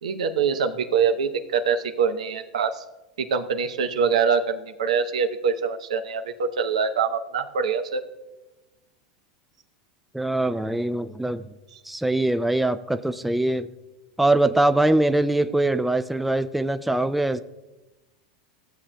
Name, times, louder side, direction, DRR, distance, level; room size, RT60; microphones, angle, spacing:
voice 1, 0.0-2.8 3.2-8.0, right 6 dB, 90° right, 7 dB, 0.7 m, -24 dB
voice 2, 10.1-11.5 11.9-13.7 14.2-17.4, right 2 dB, 5° right, 10 dB, 0.3 m, -22 dB
15.5 x 7.3 x 2.2 m, 1.0 s
hypercardioid pair, 115°, 4 cm